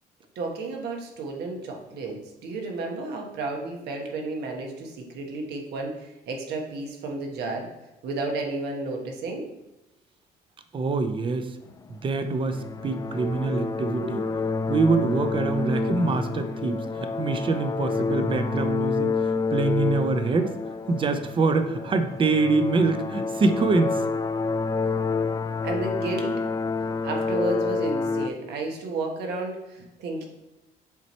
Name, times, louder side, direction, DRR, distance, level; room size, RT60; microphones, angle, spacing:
voice 1, 0.3-7.7 8.0-9.5 13.8-14.3 25.6-26.4 27.0-30.3, right 3 dB, 75° right, 1 dB, 1.2 m, -32 dB
voice 2, 10.7-11.6 11.9-14.2 14.7-20.6 20.9-24.0, right 3 dB, 30° right, 8 dB, 0.6 m, -25 dB
sound 1, 11.7-28.3, left 4 dB, 20° left, 0.3 m, -28 dB
7.3 x 3.1 x 4.2 m, 0.96 s
cardioid pair, 110°, 17 cm